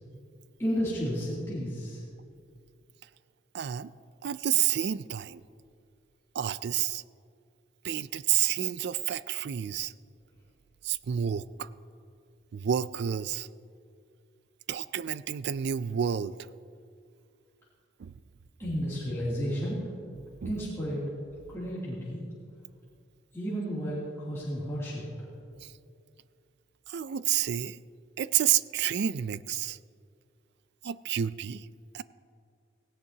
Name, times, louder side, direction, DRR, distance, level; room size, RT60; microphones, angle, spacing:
voice 1, 0.6-2.0 18.6-19.8 20.4-21.0 21.5-22.2 23.3-25.0, equal, 15° left, -10 dB, 2.7 m, -32 dB
voice 2, 3.5-3.9 4.2-5.4 6.3-7.0 7.8-9.9 10.8-11.7 12.5-13.5 14.7-16.5 18.0-18.1 20.4-20.6 25.6-25.7 26.9-27.8 28.2-29.8 30.8-31.7 31.9-32.0, right 10 dB, 60° right, 17 dB, 0.4 m, -29 dB
17.5 x 17.0 x 2.8 m, 2.3 s
head